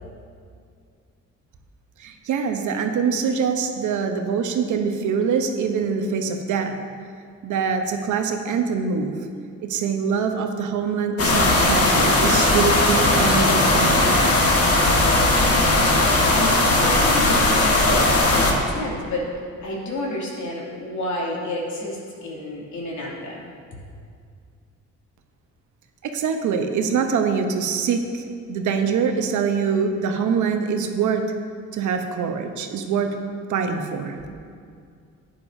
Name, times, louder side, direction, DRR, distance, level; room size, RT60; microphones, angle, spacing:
voice 1, 2.0-6.8 7.4-9.2 9.6-14.1 26.0-31.2 31.7-33.1 33.5-34.2, right 6 dB, 75° right, 5 dB, 0.9 m, -24 dB
sound 1, 11.2-18.5, left 2 dB, 50° left, 1.6 m, -18 dB
voice 2, 16.3-19.3 19.6-23.5 23.7-23.8, left 1 dB, 70° left, -4 dB, 2.5 m, -30 dB
12.0 x 9.1 x 2.7 m, 2.3 s
cardioid pair, 90°, 30 cm